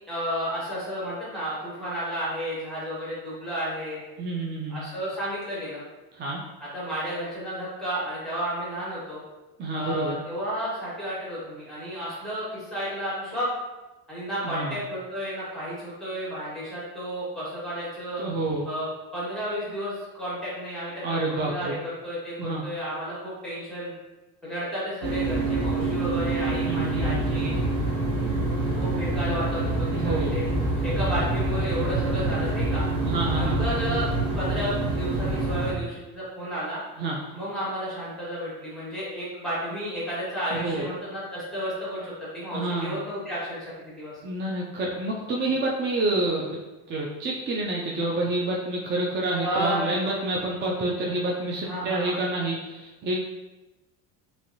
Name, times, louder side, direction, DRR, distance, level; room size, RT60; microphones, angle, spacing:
voice 1, 0.1-4.0 4.7-5.8 6.7-9.2 9.7-13.5 14.1-18.2 18.6-23.9 24.4-27.5 28.7-30.4 30.8-32.8 33.3-34.1 34.3-36.8 37.3-44.1 49.4-50.0 51.6-52.2, equal, ahead, -9 dB, 1.4 m, -32 dB
voice 2, 4.2-4.8 6.1-6.4 9.6-10.2 14.4-14.8 18.2-18.7 21.0-21.7 22.4-22.6 26.6-27.5 29.9-30.3 33.0-33.7 37.0-37.2 40.5-40.9 42.5-42.9 44.2-46.6 46.9-53.2, right 2 dB, 25° right, -2 dB, 0.4 m, -28 dB
sound 1, 25.0-35.7, right 2 dB, 90° right, 1.0 m, -26 dB
3.0 x 2.6 x 2.7 m, 1.1 s
supercardioid pair, 90°, 43 cm